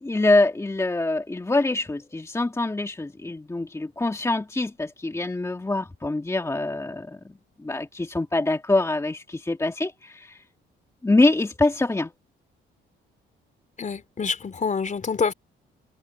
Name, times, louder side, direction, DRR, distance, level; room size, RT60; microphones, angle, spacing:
voice 1, 0.0-7.3 7.6-10.4 11.0-12.1, left 2 dB, 15° left, 2.0 m, -24 dB
voice 2, 13.8-15.3, left 5 dB, 40° left, 3.8 m, -26 dB
cardioid pair, 90°, 20 cm